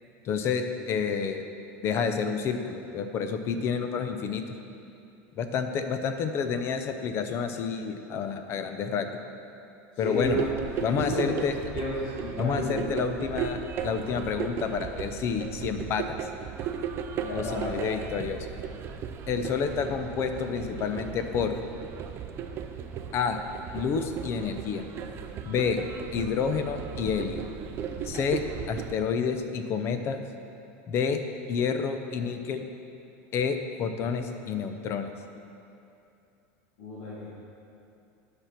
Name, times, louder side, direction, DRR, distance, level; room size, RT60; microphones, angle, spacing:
voice 1, 0.2-1.4 1.8-4.4 5.4-9.1 10.0-10.4 10.8-11.5 12.4-16.1 17.3-18.5 19.3-21.5 23.1-23.4 23.7-24.8 25.5-25.8 26.1-27.4 28.0-28.4 28.7-30.2 30.9-31.2 31.5-32.7 33.3-35.1, left 6 dB, 35° left, 7 dB, 0.7 m, -29 dB
voice 2, 10.0-10.4 10.9-11.4 11.7-11.9 12.2-12.8 17.2-17.9 36.8-37.3, left 1 dB, 65° left, -8 dB, 2.1 m, -32 dB
sound 1, 10.2-29.0, right 7 dB, 35° right, 0.5 m, -36 dB
9.7 x 6.1 x 5.8 m, 2.7 s
supercardioid pair, 145°, 7 cm